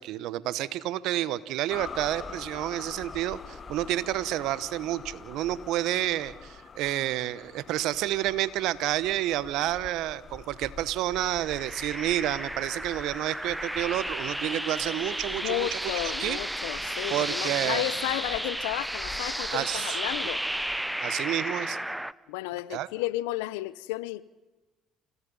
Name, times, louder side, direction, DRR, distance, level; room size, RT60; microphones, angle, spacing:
voice 1, 0.0-15.9 16.2-16.4 17.1-17.8 19.5-20.0 21.0-21.8 22.7-22.9, right 14 dB, 75° right, 1.0 m, -30 dB
sound 1, 1.7-20.8, left 5 dB, 40° left, 1.5 m, -46 dB
sound 2, 11.4-22.1, right 1 dB, 5° right, 0.7 m, -33 dB
voice 2, 15.4-20.4 22.3-24.2, left 17 dB, 85° left, 0.7 m, -32 dB
30.0 x 17.0 x 5.5 m
supercardioid pair, 70°, 0 cm